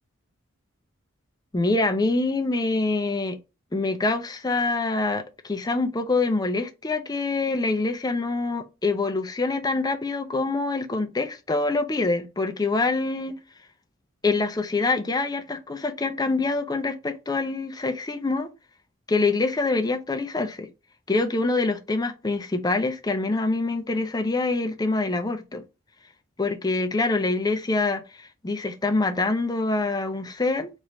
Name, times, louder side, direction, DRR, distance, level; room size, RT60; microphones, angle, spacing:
voice 1, 1.5-3.4 3.7-13.3 14.2-18.5 19.1-20.7 21.1-25.6 26.4-30.7, left 3 dB, 20° left, 0.5 m, -25 dB
3.1 x 2.5 x 4.3 m
head